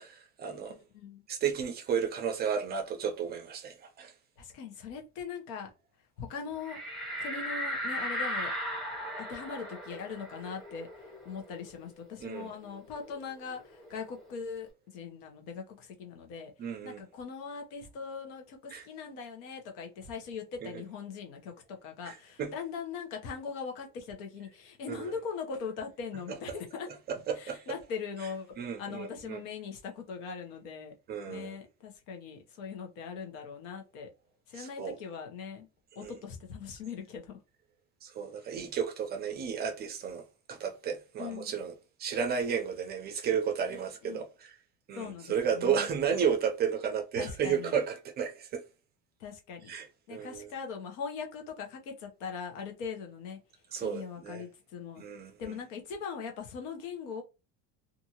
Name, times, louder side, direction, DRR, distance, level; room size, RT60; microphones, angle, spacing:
voice 1, 0.0-0.7 1.3-4.1 12.2-12.5 16.6-17.0 18.7-18.9 20.6-20.7 22.0-22.5 24.9-25.1 27.1-27.6 28.6-29.4 31.1-31.6 34.6-35.0 36.0-36.1 38.0-40.2 40.5-41.7 42.0-44.5 44.9-48.6 49.7-50.5 53.7-54.4 55.0-55.6, right 7 dB, 30° right, 0.4 m, -33 dB
voice 2, 0.7-1.2 4.4-5.7 6.2-6.8 7.2-8.5 9.2-16.5 16.8-26.9 27.4-30.9 31.3-34.1 34.5-35.7 35.9-37.4 38.4-38.5 41.2-41.5 43.7-44.2 45.0-45.9 47.2-47.7 49.2-49.7 50.1-53.4 53.8-55.0 55.4-57.2, left 6 dB, 80° left, 1.0 m, -41 dB
sound 1, 6.6-11.8 12.2-12.3 12.6-14.3, equal, ahead, 0.8 m, -37 dB
2.6 x 2.5 x 2.8 m
cardioid pair, 160°, 37 cm